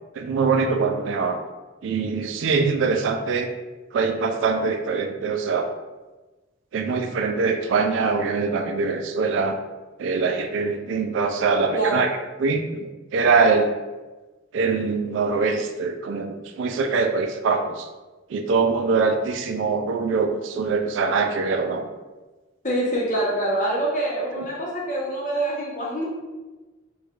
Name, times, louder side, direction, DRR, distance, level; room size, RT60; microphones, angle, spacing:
voice 1, 0.2-1.4 1.8-3.5 3.9-5.7 6.7-9.6 10.0-12.1 12.4-13.7 14.5-17.9 18.3-21.9, right 4 dB, 75° right, 6 dB, 0.3 m, -23 dB
voice 2, 11.7-12.1 22.6-26.0, right 1 dB, 40° left, -3 dB, 0.8 m, -25 dB
4.4 x 2.3 x 2.4 m, 1.2 s
head